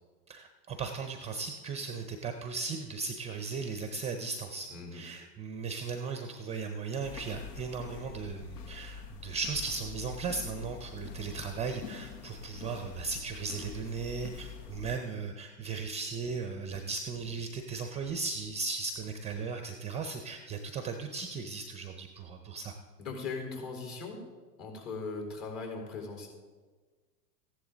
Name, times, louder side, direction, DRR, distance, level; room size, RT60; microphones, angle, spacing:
voice 1, 0.3-22.7, right 4 dB, 15° right, 6 dB, 0.5 m, -37 dB
voice 2, 4.7-5.0 23.0-24.2 24.6-26.3, left 4 dB, 45° left, 2 dB, 4.0 m, -39 dB
sound 1, 7.0-15.0, left 6 dB, 80° left, 1.2 m, -45 dB
14.5 x 11.0 x 3.9 m, 1.4 s
hypercardioid pair, 120°, 47 cm